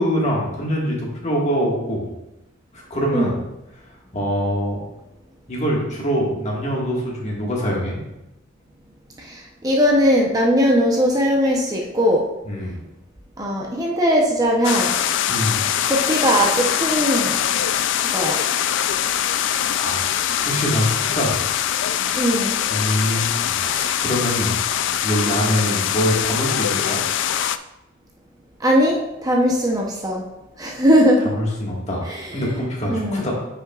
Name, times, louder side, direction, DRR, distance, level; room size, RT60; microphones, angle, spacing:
voice 1, 0.0-2.1 2.7-3.4 4.1-4.8 5.5-8.0 12.4-12.8 15.3-15.6 19.7-20.1 20.4-21.4 22.7-24.5 25.0-27.0 31.2-33.3, equal, 35° left, -3 dB, 1.7 m, -24 dB
voice 2, 9.2-12.2 13.4-14.9 15.9-17.3 18.1-18.4 22.1-22.6 28.6-29.0 29.2-30.3 30.6-31.3 32.1-32.3 32.9-33.2, equal, 20° right, -1 dB, 0.8 m, -19 dB
sound 1, 14.6-27.6, left 10 dB, 60° left, 0.3 m, -23 dB
9.6 x 5.7 x 2.4 m, 0.94 s
head